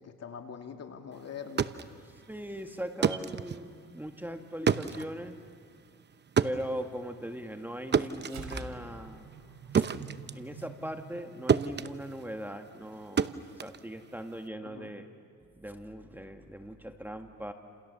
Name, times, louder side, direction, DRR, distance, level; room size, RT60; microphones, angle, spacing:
voice 1, 0.0-1.7 14.6-14.9, left 7 dB, 55° left, 4 dB, 2.6 m, -43 dB
sound 1, 1.3-11.2 11.5-14.5, right 6 dB, 35° right, 0.8 m, -32 dB
voice 2, 2.3-5.4 6.4-9.3 9.7-9.8 10.3-15.1 15.6-17.5, equal, 5° right, 5 dB, 1.8 m, -40 dB
sound 2, 8.2-12.9, right 4 dB, 65° right, 6.2 m, -47 dB
30.0 x 28.0 x 7.0 m, 2.3 s
cardioid pair, 90°, 30 cm